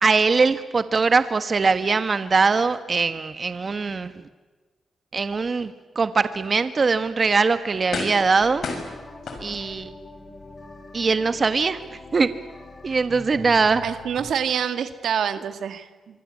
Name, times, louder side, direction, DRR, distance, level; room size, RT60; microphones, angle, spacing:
voice 1, 0.0-4.1 5.1-8.7 9.4-9.9 10.9-11.8 12.1-12.3 12.8-13.8, right 4 dB, 45° right, 11 dB, 1.4 m, -21 dB
sound 1, 7.0-7.1 7.9-8.4 8.6-9.9 10.4-10.5, left 4 dB, 70° left, 6.3 m, -32 dB
sound 2, 8.4-14.3, left 2 dB, 35° left, 6.1 m, -43 dB
voice 2, 13.8-16.1, right 8 dB, 80° right, 9 dB, 1.7 m, -27 dB
26.0 x 24.0 x 8.5 m, 1.3 s
cardioid pair, 65°, 0 cm